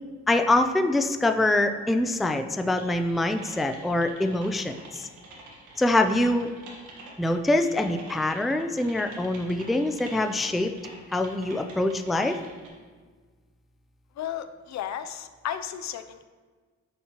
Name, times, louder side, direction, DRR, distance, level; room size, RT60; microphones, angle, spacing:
voice 1, 0.3-5.1 5.8-6.5 7.2-10.7 11.1-12.4, left 1 dB, ahead, 7 dB, 0.3 m, -24 dB
Typing, 2.8-12.7, right 2 dB, 80° right, 1.5 m, -47 dB
voice 2, 14.2-16.2, left 10 dB, 65° left, 10 dB, 0.5 m, -34 dB
11.0 x 4.2 x 2.9 m, 1.5 s
cardioid pair, 90°, 30 cm